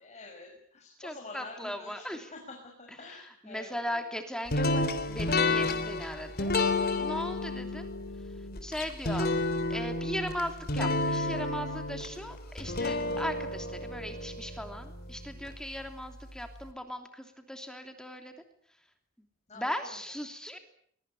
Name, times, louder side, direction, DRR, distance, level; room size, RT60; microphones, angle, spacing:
voice 1, 0.0-4.0 19.5-20.0, left 3 dB, 35° left, 1 dB, 6.1 m, -47 dB
voice 2, 1.0-2.3 3.0-6.5 7.0-7.9 8.6-9.3 9.7-18.3 19.5-20.6, equal, 5° left, 6 dB, 3.0 m, -38 dB
sound 1, 4.5-15.5, left 2 dB, 50° left, 3.5 m, -31 dB
23.5 x 22.5 x 9.9 m, 0.65 s
head